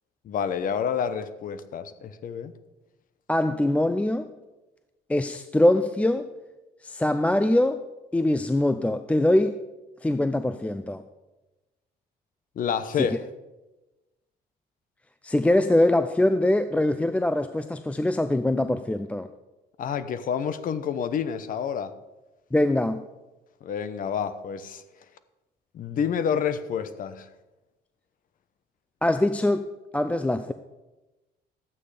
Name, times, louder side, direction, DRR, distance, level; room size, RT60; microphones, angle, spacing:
voice 1, 0.2-2.5 12.6-13.2 19.8-21.9 23.6-24.8 25.7-27.3, left 7 dB, 55° left, 13 dB, 0.9 m, -28 dB
voice 2, 3.3-4.3 5.1-6.3 6.8-7.8 8.1-9.6 10.0-11.0 13.0-13.1 15.2-19.3 22.5-23.0 29.0-30.5, left 1 dB, 10° left, 10 dB, 0.4 m, -23 dB
12.5 x 8.6 x 5.0 m, 1.1 s
cardioid pair, 110°, 17 cm